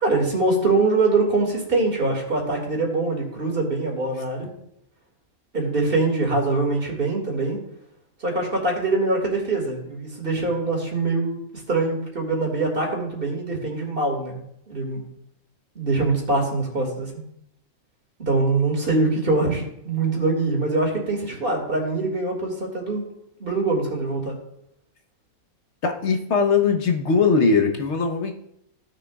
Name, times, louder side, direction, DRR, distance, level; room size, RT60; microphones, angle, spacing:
voice 1, 0.0-4.5 5.5-7.6 8.2-11.4 11.7-14.4 14.7-15.0 15.8-17.1 18.2-23.1 23.4-24.3, right 3 dB, 40° right, 0 dB, 2.3 m, -23 dB
voice 2, 25.8-28.3, left 5 dB, 55° left, 4 dB, 1.2 m, -20 dB
16.0 x 6.3 x 2.3 m, 0.77 s
omnidirectional pair, 1.5 m